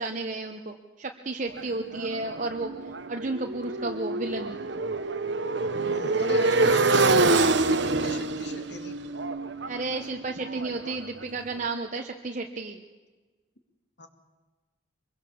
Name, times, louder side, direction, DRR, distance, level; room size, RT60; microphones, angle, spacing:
voice 1, 0.0-4.6 9.7-12.8, right 3 dB, 40° right, 3 dB, 1.1 m, -33 dB
Motorcycle, 1.6-11.4, right 3 dB, 60° right, 1.1 m, -26 dB
voice 2, 5.9-9.0 14.0-14.1, left 3 dB, 55° left, 6 dB, 2.5 m, -40 dB
24.5 x 22.5 x 7.1 m, 1.3 s
head